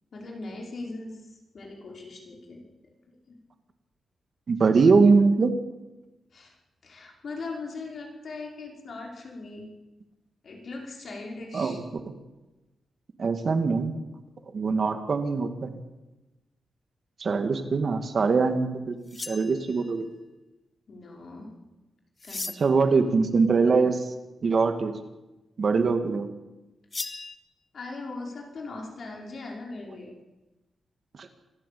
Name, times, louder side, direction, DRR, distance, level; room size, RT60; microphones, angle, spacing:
voice 1, 0.1-2.6 3.1-3.4 6.3-6.5 6.8-9.7 10.4-11.8 17.9-18.0 20.9-21.6 22.2-22.5 27.7-30.1, left 3 dB, 50° left, 1 dB, 5.4 m, -40 dB
voice 2, 4.5-5.5 11.5-12.0 13.2-13.9 14.5-15.7 17.2-20.1 22.6-24.1 24.4-25.0 25.6-26.3 31.2-31.3, right 4 dB, 40° right, 7 dB, 2.1 m, -23 dB
sound 1, 19.1-20.0 22.2-22.9 26.9-27.4, left 3 dB, 25° left, 1.1 m, -37 dB
26.0 x 16.5 x 8.6 m, 1.0 s
wide cardioid pair, 160°, 0 cm